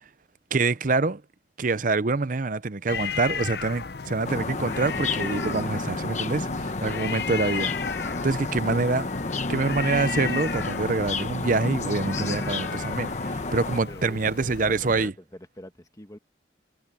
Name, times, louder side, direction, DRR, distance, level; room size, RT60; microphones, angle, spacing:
voice 1, 0.5-1.2 1.6-9.0 9.5-15.1, right 3 dB, 50° right, 0.7 m, -26 dB
sound 1, 2.9-15.1, left 6 dB, 60° left, 0.7 m, -35 dB
sound 2, 4.2-13.8, left 3 dB, 40° left, 1.2 m, -31 dB
voice 2, 13.9-16.2, left 1 dB, 20° left, 1.7 m, -45 dB
head